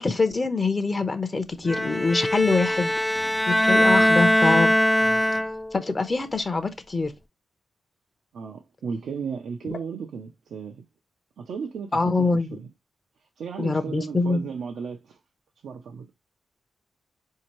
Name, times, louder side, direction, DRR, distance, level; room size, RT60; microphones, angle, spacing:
voice 1, 0.0-2.9 3.5-4.7 5.7-7.1 9.7-9.8 11.9-12.5 13.6-14.4, left 3 dB, 35° left, 0.7 m, -24 dB
Bowed string instrument, 1.7-5.8, left 1 dB, 10° left, 0.3 m, -21 dB
voice 2, 3.7-4.3 5.0-5.2 8.3-10.8 11.4-12.7 13.4-15.2 15.6-16.1, right 6 dB, 80° right, 0.5 m, -35 dB
4.2 x 2.8 x 3.0 m
cardioid pair, 60°, 0 cm